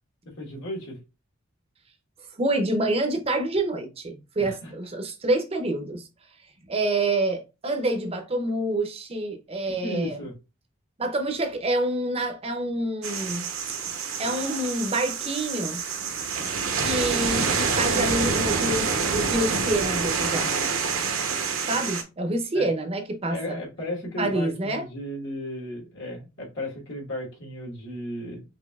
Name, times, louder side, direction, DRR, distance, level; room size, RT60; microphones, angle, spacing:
voice 1, 0.2-1.0 4.4-4.7 9.7-10.3 22.5-22.7 23.3-28.4, equal, 60° left, 1.4 m, -35 dB
voice 2, 2.4-6.1 6.7-10.2 11.0-13.5 14.2-15.8 16.8-20.5 21.7-23.6 24.2-24.8, right 1 dB, 30° right, 0.6 m, -27 dB
sound 1, 13.0-22.0, right 5 dB, 70° right, 0.7 m, -27 dB
5.1 x 2.7 x 2.3 m
head